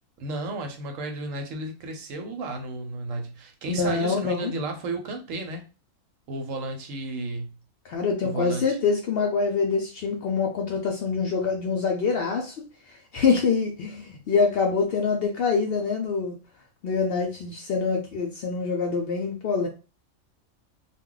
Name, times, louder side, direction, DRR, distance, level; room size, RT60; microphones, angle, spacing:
voice 1, 0.2-5.7 6.3-7.5 8.2-8.8, right 2 dB, 75° right, 1.1 m, -33 dB
voice 2, 3.7-4.5 7.8-16.4 16.8-19.7, left 5 dB, 65° left, 0.6 m, -25 dB
2.2 x 2.2 x 3.7 m
omnidirectional pair, 1.4 m